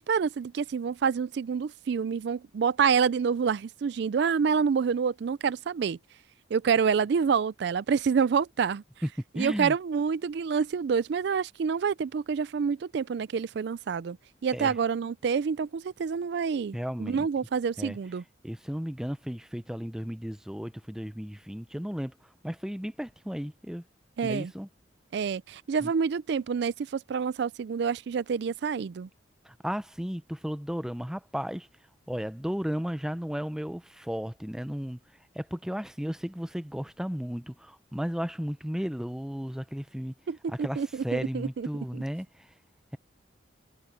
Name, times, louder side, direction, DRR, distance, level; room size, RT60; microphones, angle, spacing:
voice 1, 0.0-6.0 6.5-8.8 9.3-14.2 14.4-18.2 24.2-24.5 25.1-29.1 40.3-41.7 41.9-42.0, right 6 dB, 60° right, 0.4 m, -27 dB
voice 2, 9.3-9.7 14.5-14.8 16.7-17.3 17.8-18.0 18.4-22.1 22.4-23.8 24.2-24.7 25.8-25.9 29.5-31.7 32.1-35.0 35.3-40.1 40.5-42.3, equal, 5° right, 0.6 m, -34 dB
head